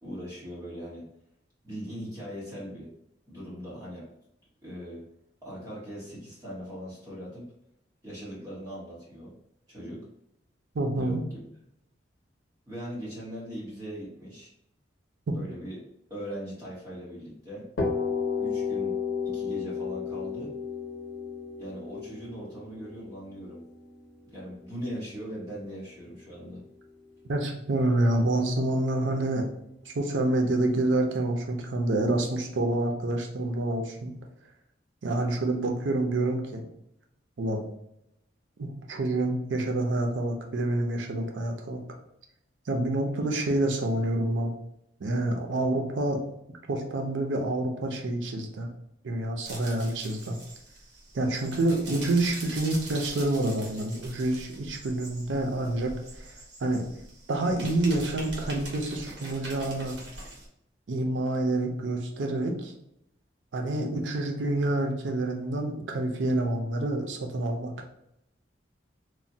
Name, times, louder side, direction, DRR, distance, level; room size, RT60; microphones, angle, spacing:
voice 1, 0.0-1.1 1.6-2.9 3.3-4.1 4.6-5.0 5.4-7.5 8.0-9.3 9.7-10.1 10.9-11.4 12.7-14.5 15.3-15.8 16.1-17.7 18.4-19.0 19.2-20.5 21.6-23.6 24.2-26.6, equal, 20° right, -7 dB, 1.2 m, -40 dB
voice 2, 10.7-11.2 27.3-29.5 29.9-34.1 35.0-36.6 37.4-37.6 38.6-41.8 42.7-44.6 45.0-46.2 46.7-48.7 49.0-50.4 51.1-56.3 56.6-56.8 57.3-60.0 60.9-62.7 63.5-67.7, right 2 dB, 90° right, 2 dB, 0.5 m, -27 dB
sound 1, 17.8-25.5, left 5 dB, 75° left, 0.7 m, -33 dB
sound 2, 49.4-60.5, right 2 dB, 70° right, 0.9 m, -43 dB
3.1 x 2.1 x 2.7 m, 0.78 s
head